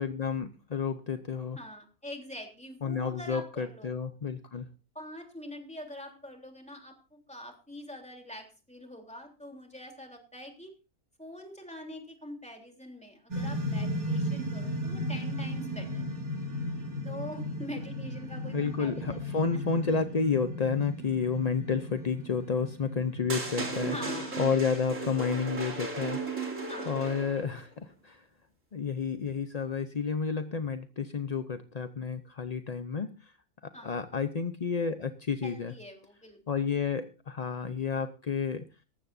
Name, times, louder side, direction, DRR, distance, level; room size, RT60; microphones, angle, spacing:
voice 1, 0.0-1.6 2.8-4.7 18.5-24.0 24.4-26.6 26.9-28.2 28.7-33.3 33.8-35.7 36.5-38.7, left 5 dB, 40° left, 9 dB, 0.6 m, -31 dB
voice 2, 1.6-3.9 4.9-10.7 11.2-16.0 17.0-20.0 23.8-24.4 26.7-27.1 33.7-34.0 35.4-36.4, left 1 dB, 5° left, 2 dB, 3.3 m, -44 dB
sound 1, 13.3-24.7, equal, 75° right, 3.4 m, -36 dB
sound 2, 23.3-27.6, right 3 dB, 55° right, 3.2 m, -35 dB
18.5 x 15.0 x 2.6 m, 0.31 s
omnidirectional pair, 1.6 m